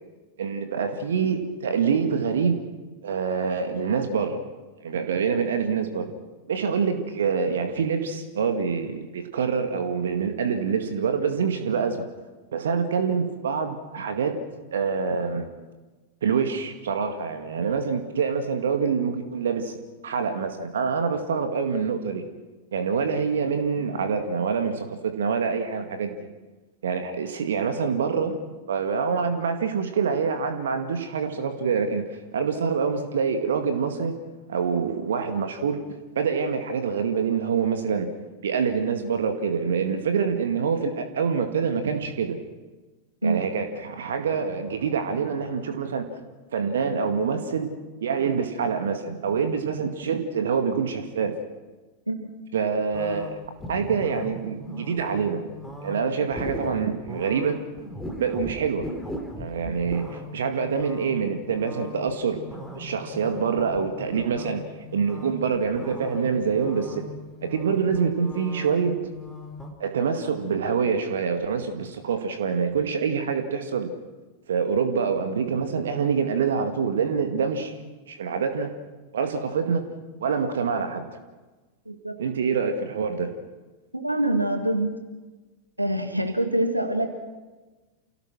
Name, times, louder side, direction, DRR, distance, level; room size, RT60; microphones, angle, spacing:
voice 1, 0.4-2.6 3.0-4.5 4.8-6.1 6.5-12.1 12.5-14.4 14.7-15.5 16.2-19.7 20.0-22.2 22.7-26.2 26.8-28.4 28.7-34.1 34.5-35.8 36.2-38.1 38.4-42.4 43.2-46.1 46.5-47.7 48.0-51.3 52.5-53.4 53.7-55.4 55.8-57.6 58.2-58.9 59.4-62.4 62.8-64.6 64.9-67.0 67.4-69.0 69.8-73.9 74.5-77.7 78.1-78.7 79.1-79.9 80.2-81.1 82.2-83.3, right 6 dB, 65° right, 6 dB, 2.0 m, -26 dB
sound 1, 52.9-69.7, left 1 dB, 5° left, 3.8 m, -39 dB
voice 2, 81.9-82.2 83.9-84.9 85.8-87.1, right 1 dB, 90° right, 5 dB, 2.1 m, -25 dB
29.0 x 17.0 x 6.2 m, 1.2 s
figure-of-eight pair, 90°, 0 cm